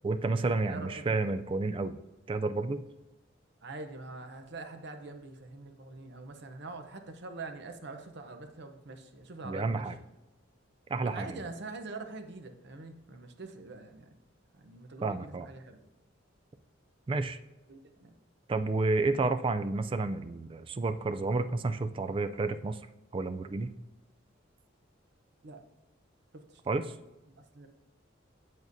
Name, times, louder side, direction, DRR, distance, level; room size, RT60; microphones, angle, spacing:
voice 1, 0.0-2.0 2.3-2.8 9.4-10.0 10.9-11.4 15.0-15.5 17.1-17.4 18.5-22.8 23.1-23.7 26.7-26.9, right 3 dB, 25° right, 11 dB, 0.3 m, -30 dB
voice 2, 0.6-1.2 3.6-9.9 11.0-14.1 14.5-15.8 17.7-18.1 25.4-25.6 26.3-26.6 27.4-27.7, right 3 dB, 60° right, 7 dB, 0.7 m, -44 dB
7.8 x 7.3 x 2.6 m, 1.0 s
head